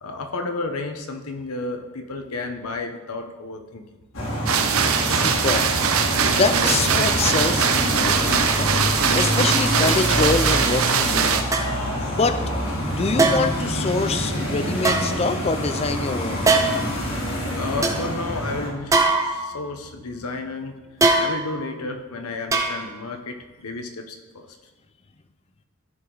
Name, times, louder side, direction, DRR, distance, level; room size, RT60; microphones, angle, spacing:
voice 1, 0.0-3.8 17.5-20.8 21.2-24.5, left 3 dB, 85° left, 5 dB, 1.0 m, -32 dB
sound 1, 4.1-18.7, equal, 65° left, 2.0 m, -26 dB
sound 2, 4.5-11.4, right 6 dB, 70° right, 0.7 m, -21 dB
voice 2, 5.1-5.7 6.3-8.7 9.1-11.5 12.1-12.4 12.9-16.6, left 3 dB, 25° left, 10 dB, 0.4 m, -25 dB
sound 3, 6.6-6.7 7.2-7.4 8.2-8.3 9.2-9.3 10.3-10.4 11.5-11.9 13.2-13.7 14.8-15.7 16.4-16.9 17.4-17.5 17.8-18.0 18.9-19.7 21.0-21.7 22.5-23.1 23.4-23.5, right 3 dB, 15° right, 0.7 m, -22 dB
13.5 x 4.8 x 4.0 m, 1.2 s
head